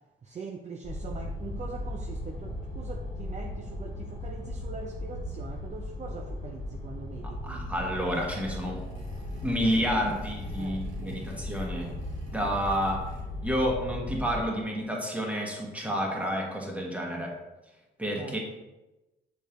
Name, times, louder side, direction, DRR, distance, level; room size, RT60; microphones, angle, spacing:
voice 1, 0.2-7.6 9.6-10.2 10.6-11.3 18.2-18.4, right 5 dB, 35° right, 2 dB, 0.5 m, -42 dB
sound 1, 0.8-14.4, left 1 dB, 35° left, 1.7 m, -37 dB
voice 2, 7.2-8.8 9.4-12.0 12.3-13.0 13.4-17.3 18.0-18.4, equal, 5° right, -1 dB, 1.5 m, -30 dB
sound 2, 7.5-13.6, right 1 dB, 70° right, 1.6 m, -48 dB
6.3 x 5.2 x 3.0 m, 1.0 s
cardioid pair, 90°, 20 cm